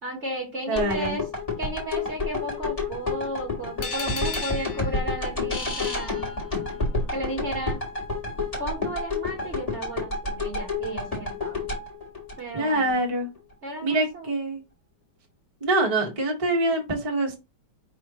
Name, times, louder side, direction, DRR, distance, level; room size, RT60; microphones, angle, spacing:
voice 1, 0.0-1.2 1.6-6.3 7.1-7.8 8.6-11.7 12.4-12.9 13.6-14.3, right 1 dB, 40° right, -1 dB, 1.2 m, -34 dB
sound 1, 0.7-12.9 13.4-13.5, left 3 dB, 20° left, 1.3 m, -29 dB
voice 2, 0.7-1.1 12.5-13.3 13.8-14.6 15.6-17.4, right 2 dB, 20° right, -1 dB, 1.0 m, -25 dB
sound 2, 3.8-6.9, left 3 dB, 60° left, 0.5 m, -35 dB
5.0 x 3.4 x 2.9 m, 0.26 s
omnidirectional pair, 2.2 m